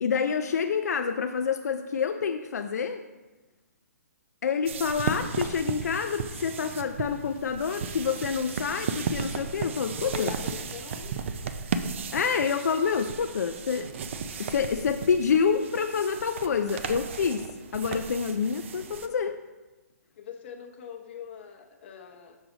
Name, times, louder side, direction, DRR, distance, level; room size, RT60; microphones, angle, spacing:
voice 1, 0.0-3.0 4.4-10.3 12.1-13.9 14.4-19.4, left 6 dB, 75° left, 6 dB, 0.4 m, -27 dB
sound 1, 4.7-19.1, right 5 dB, 45° right, 0.4 m, -35 dB
voice 2, 10.0-11.2 20.2-22.4, left 9 dB, 40° left, 3 dB, 0.8 m, -41 dB
6.3 x 4.8 x 3.9 m, 1.2 s
hypercardioid pair, 160°, 9 cm